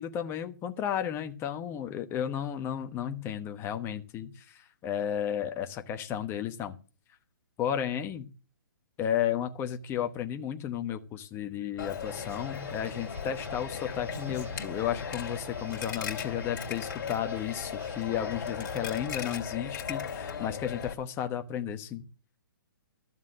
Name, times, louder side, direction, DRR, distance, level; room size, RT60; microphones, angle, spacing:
voice 1, 0.0-6.7 7.6-8.2 9.0-22.0, left 9 dB, 20° left, 7 dB, 1.1 m, -33 dB
Coin (dropping), 11.8-20.9, left 7 dB, 55° left, 2.9 m, -37 dB
sound 1, 12.0-19.4, right 1 dB, 15° right, 2.0 m, -49 dB
13.0 x 7.3 x 6.5 m, 0.37 s
hypercardioid pair, 140°, 12 cm